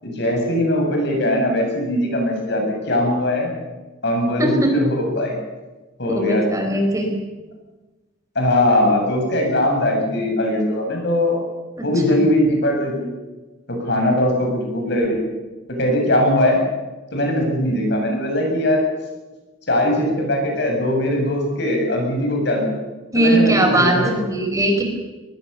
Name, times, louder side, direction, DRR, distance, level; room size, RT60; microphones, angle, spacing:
voice 1, 0.0-3.5 4.0-5.3 6.0-6.4 8.3-11.4 11.8-13.1 13.7-15.2 15.8-16.6 17.1-18.8 19.7-22.7 23.1-24.2, left 1 dB, 60° left, 2 dB, 7.7 m, -20 dB
voice 2, 4.4-4.7 6.1-7.1 11.8-12.2 23.1-24.8, right 1 dB, 15° right, 3 dB, 4.6 m, -20 dB
22.5 x 21.5 x 7.0 m, 1.2 s
head